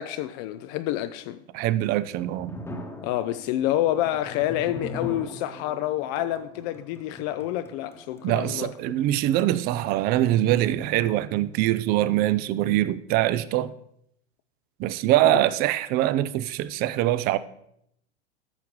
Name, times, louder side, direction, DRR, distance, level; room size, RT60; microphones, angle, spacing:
voice 1, 0.0-1.4 3.0-8.7 15.2-15.4, left 13 dB, 40° left, 0.4 m, -28 dB
voice 2, 1.5-2.6 8.2-13.7 14.8-17.4, right 14 dB, 30° right, 0.3 m, -23 dB
sound 1, 1.9-8.9, left 2 dB, 5° left, 1.0 m, -41 dB
13.5 x 5.7 x 3.1 m
hypercardioid pair, 95°, 35 cm